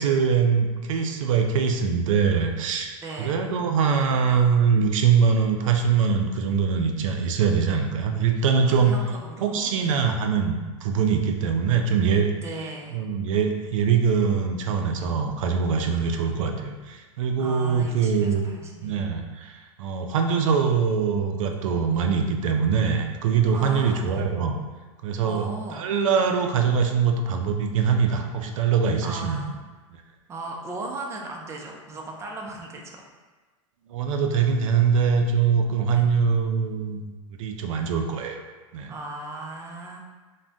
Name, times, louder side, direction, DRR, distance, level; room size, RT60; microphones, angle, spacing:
voice 1, 0.0-9.0 9.4-12.3 12.9-18.5 18.8-24.6 25.0-29.4 33.9-37.1 37.4-38.4 38.7-38.9, right 6 dB, 75° right, 4 dB, 0.4 m, -23 dB
voice 2, 3.0-3.5 8.7-10.0 12.4-13.0 15.9-16.3 17.4-19.0 23.5-24.3 25.2-25.8 29.0-29.6 30.3-33.1 35.9-36.1 38.9-40.0, right 2 dB, 15° right, 0 dB, 0.4 m, -37 dB
2.5 x 2.1 x 3.3 m, 1.3 s
hypercardioid pair, 125°, 17 cm